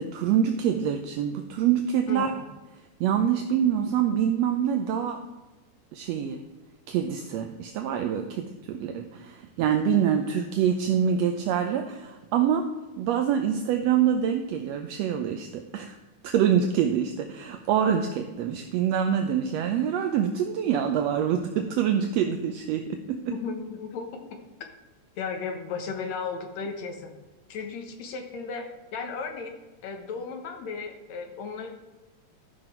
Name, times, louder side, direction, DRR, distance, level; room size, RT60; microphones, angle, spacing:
voice 1, 0.0-2.3 3.0-5.2 5.9-6.4 6.9-12.6 13.0-16.0 16.2-23.2, right 8 dB, 80° right, 5 dB, 1.6 m, -25 dB
voice 2, 2.1-2.4 23.3-24.1 25.2-27.1 27.5-29.5 29.8-31.7, left 5 dB, 65° left, 4 dB, 2.3 m, -35 dB
13.0 x 5.9 x 4.4 m, 1.2 s
omnidirectional pair, 3.5 m